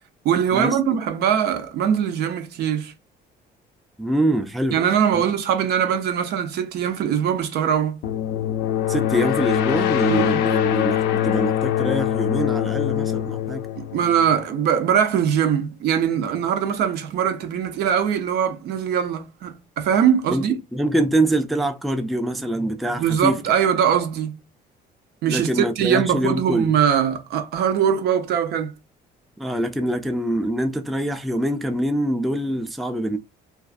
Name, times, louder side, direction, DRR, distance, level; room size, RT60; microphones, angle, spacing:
voice 1, 0.2-2.9 4.7-8.0 10.1-10.4 13.8-20.5 23.0-24.4 25.2-28.7, right 8 dB, 70° right, 0.6 m, -21 dB
voice 2, 4.0-4.8 5.1-5.2 8.9-13.6 20.3-20.4 20.7-23.4 25.3-26.7 29.4-33.2, right 1 dB, ahead, 0.3 m, -24 dB
sound 1, 8.0-14.7, left 11 dB, 85° left, 0.4 m, -23 dB
2.4 x 2.3 x 2.4 m
cardioid pair, 110°, 17 cm